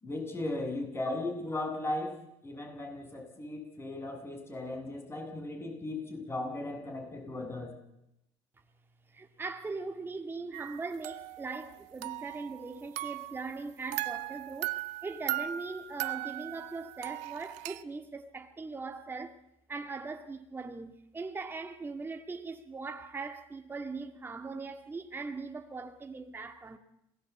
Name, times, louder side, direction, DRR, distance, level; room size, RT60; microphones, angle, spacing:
voice 1, 0.0-2.1 2.4-7.7, left 2 dB, 20° left, 7.8 m, -37 dB
voice 2, 9.1-19.4 19.7-26.8, right 4 dB, 15° right, 2.0 m, -40 dB
sound 1, 10.5-11.8 12.0-13.5 13.9-17.8, right 16 dB, 75° right, 1.0 m, -38 dB
27.0 x 19.0 x 8.5 m
cardioid pair, 115°, 12 cm